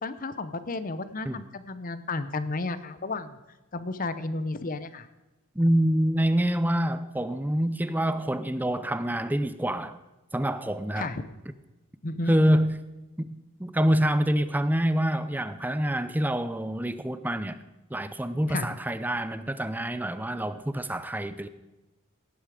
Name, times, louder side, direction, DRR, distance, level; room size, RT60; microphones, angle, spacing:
voice 1, 0.0-3.4 3.7-5.1 10.9-11.2 12.0-12.3 18.5-18.7, left 3 dB, 40° left, 0.8 m, -32 dB
voice 2, 5.6-10.0 10.3-11.1 12.3-12.8 13.2-17.6 17.9-21.5, equal, 10° right, 0.5 m, -26 dB
18.0 x 9.5 x 4.9 m
head